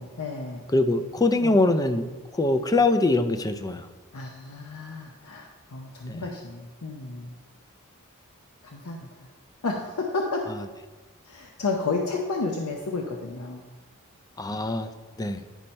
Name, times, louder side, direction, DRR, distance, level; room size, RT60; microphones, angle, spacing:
voice 1, 0.0-0.6 1.4-1.7 4.1-7.3 8.6-9.3 9.6-10.5 11.2-13.6, left 3 dB, 75° left, 2 dB, 0.7 m, -32 dB
voice 2, 0.7-2.1 2.4-3.8 6.1-6.2 14.4-14.9 15.2-15.4, left 2 dB, 15° left, 9 dB, 0.4 m, -23 dB
10.0 x 4.3 x 5.3 m, 1.3 s
head